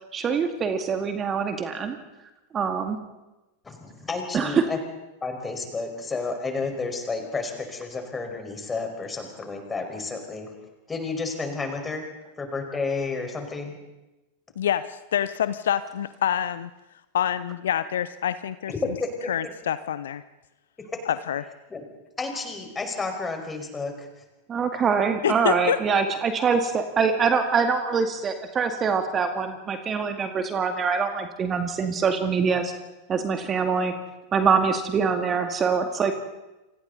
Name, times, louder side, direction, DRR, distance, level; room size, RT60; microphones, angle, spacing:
voice 1, 0.1-2.0 2.5-3.0 4.3-4.6 24.5-32.7 33.1-33.9 34.3-36.1, right 5 dB, 25° right, 6 dB, 2.1 m, -24 dB
voice 2, 3.6-4.8 5.2-10.5 10.9-12.0 12.4-13.7 18.7-19.3 20.9-21.0 21.7-21.8 22.2-24.1, left 3 dB, 15° left, 4 dB, 5.2 m, -31 dB
voice 3, 14.6-16.7 17.1-18.7 19.3-20.2 21.1-21.5 25.2-25.8, left 10 dB, 60° left, 14 dB, 0.8 m, -26 dB
29.5 x 26.5 x 4.1 m, 1.0 s
figure-of-eight pair, 90°, 0 cm